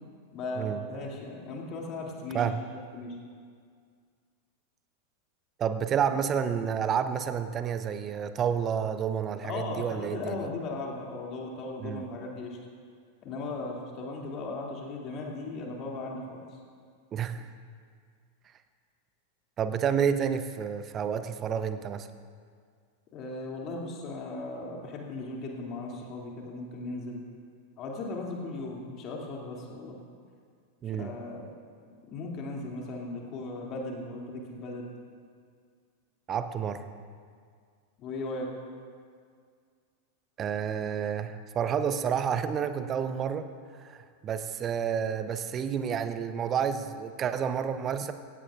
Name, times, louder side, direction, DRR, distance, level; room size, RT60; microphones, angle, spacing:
voice 1, 0.3-2.5 2.9-3.2 9.4-12.6 13.2-16.6 23.1-27.2 27.8-30.0 30.9-31.5 32.0-34.9 38.0-38.5, left 2 dB, 35° left, -1 dB, 2.5 m, -37 dB
voice 2, 5.6-10.4 11.8-12.1 17.1-17.5 19.6-22.1 30.8-31.2 36.3-36.9 40.4-43.5 43.8-48.1, right 7 dB, 30° right, 10 dB, 0.7 m, -30 dB
17.0 x 16.0 x 2.4 m, 2.1 s
figure-of-eight pair, 90°, 0 cm